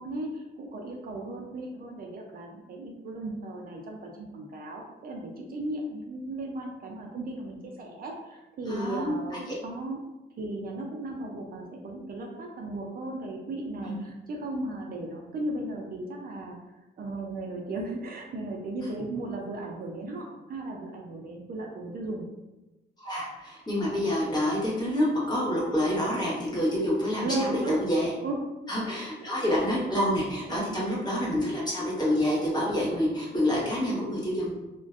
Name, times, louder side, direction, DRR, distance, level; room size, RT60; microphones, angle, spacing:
voice 1, 0.0-10.0 10.4-16.6 17.0-22.3 27.2-27.8 28.2-28.4 28.8-29.5 30.4-30.9 33.6-33.9, right 2 dB, 50° right, 0 dB, 0.4 m, -36 dB
voice 2, 8.7-9.4 13.8-14.0 23.0-28.1 28.7-34.5, equal, 20° left, -6 dB, 1.0 m, -27 dB
2.4 x 2.1 x 2.4 m, 1.0 s
cardioid pair, 90°, 20 cm